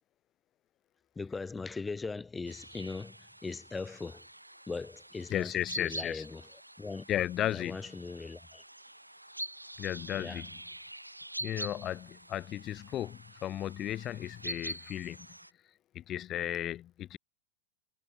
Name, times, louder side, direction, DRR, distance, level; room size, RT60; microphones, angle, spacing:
voice 1, 1.2-4.3 4.7-6.5 6.8-7.1 7.5-8.6 10.2-10.4, left 4 dB, 10° left, 5.5 m, -40 dB
sound 1, 2.5-15.5, right 1 dB, 85° right, 2.2 m, -45 dB
voice 2, 5.3-6.2 7.1-7.8 9.8-10.5 11.4-15.3 15.9-17.2, left 12 dB, 30° left, 1.1 m, -35 dB
figure-of-eight pair, 90°, 0 cm